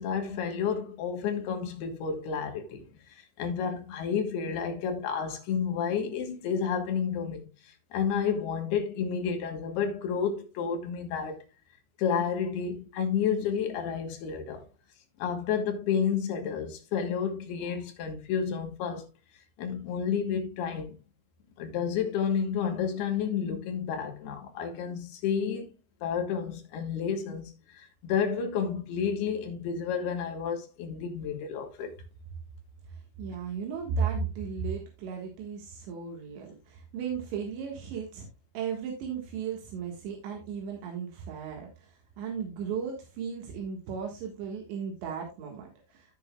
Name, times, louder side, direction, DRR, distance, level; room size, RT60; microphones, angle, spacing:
voice 1, 0.0-7.5 7.9-11.4 12.0-14.6 15.2-19.1 19.6-21.0 21.6-25.7 26.0-31.9, left 7 dB, 70° left, 3.3 m, -31 dB
voice 2, 32.9-38.3 38.5-46.2, right 6 dB, 85° right, 3.8 m, -35 dB
15.0 x 6.0 x 2.3 m
omnidirectional pair, 5.0 m